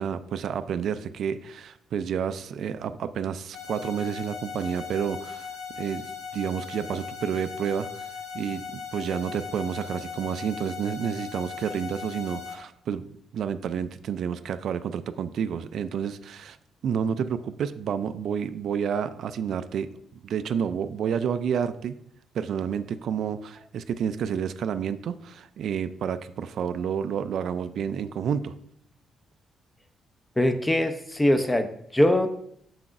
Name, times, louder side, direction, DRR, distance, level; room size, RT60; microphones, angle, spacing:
voice 1, 0.0-5.5 5.8-8.0 8.3-13.1 13.3-16.6 16.8-19.9 20.2-22.0 22.3-28.5, right 7 dB, 65° right, 11 dB, 0.3 m, -30 dB
sound 1, 3.5-12.5, left 6 dB, 75° left, 1.1 m, -38 dB
voice 2, 30.4-32.3, left 1 dB, 15° left, 9 dB, 0.5 m, -22 dB
6.9 x 5.8 x 2.5 m, 0.71 s
cardioid pair, 90°, 0 cm